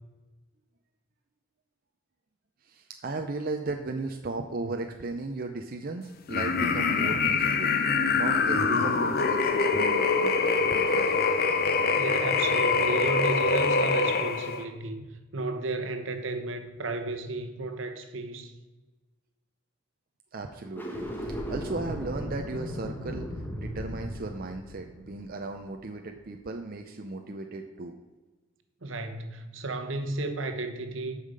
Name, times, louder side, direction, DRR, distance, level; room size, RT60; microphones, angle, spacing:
voice 1, 2.6-10.4 10.7-11.2 20.3-27.9, right 3 dB, 45° right, 4 dB, 0.6 m, -36 dB
sound 1, 6.3-14.6, left 4 dB, 50° left, 0.7 m, -24 dB
voice 2, 11.9-15.0 15.3-18.5 28.8-31.2, right 2 dB, 75° right, 6 dB, 1.1 m, -33 dB
sound 2, 20.6-25.9, equal, 10° left, 1.3 m, -36 dB
8.4 x 5.7 x 6.6 m, 1.2 s
head